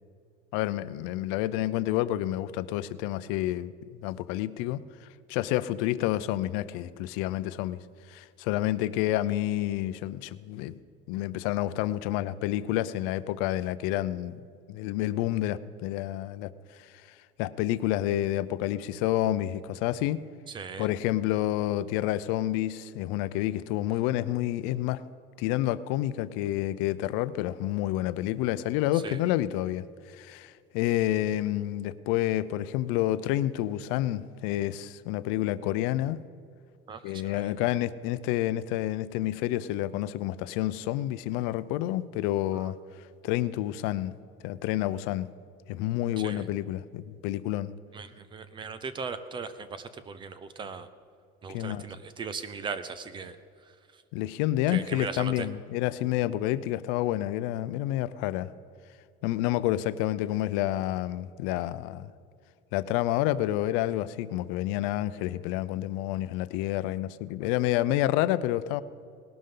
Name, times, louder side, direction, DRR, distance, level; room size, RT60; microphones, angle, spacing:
voice 1, 0.5-3.7 4.0-4.8 5.3-7.8 8.1-10.7 11.1-14.4 14.7-16.5 17.4-20.2 20.8-25.0 25.4-29.8 30.1-36.2 37.0-42.8 43.2-44.1 44.4-45.3 45.7-47.7 51.5-51.8 54.1-58.5 59.2-62.1 62.7-68.8, left 14 dB, 80° left, 15 dB, 0.5 m, -29 dB
voice 2, 20.5-20.9 29.0-29.2 36.9-37.5 42.5-42.7 46.2-46.4 47.9-50.9 51.4-53.4 54.7-55.5, right 5 dB, 25° right, 12 dB, 0.6 m, -38 dB
19.0 x 12.0 x 3.8 m, 2.4 s
cardioid pair, 160°, 21 cm